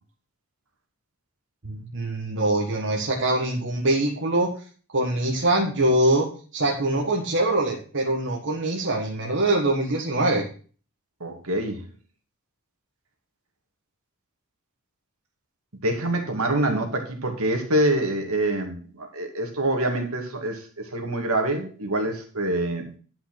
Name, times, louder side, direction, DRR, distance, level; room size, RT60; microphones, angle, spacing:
voice 1, 1.6-4.5 4.9-10.4, right 1 dB, 55° right, -1 dB, 1.7 m, -23 dB
voice 2, 11.2-11.8 15.8-23.0, right 1 dB, 70° right, 4 dB, 2.3 m, -26 dB
10.5 x 5.8 x 6.0 m, 0.40 s
head